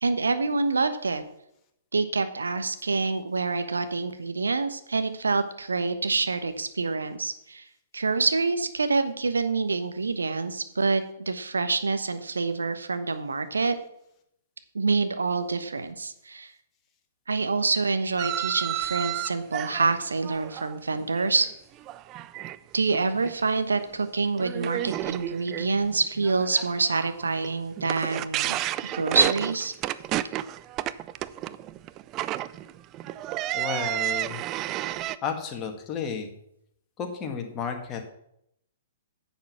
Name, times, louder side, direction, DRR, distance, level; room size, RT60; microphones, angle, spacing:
voice 1, 0.0-1.2 1.9-7.6 7.9-13.7 14.7-16.5 17.3-21.5 22.7-28.6 28.9-29.7, right 4 dB, 75° right, 10 dB, 1.1 m, -26 dB
sound 1, 18.2-21.5 21.8-22.6 22.9-23.3 23.8-23.9 24.4-35.2, right 14 dB, 30° right, 0.4 m, -32 dB
voice 2, 33.5-34.4 35.2-36.3 37.0-38.1, left 6 dB, 25° left, 3 dB, 2.0 m, -32 dB
10.0 x 7.3 x 5.9 m, 0.75 s
figure-of-eight pair, 115°, 0 cm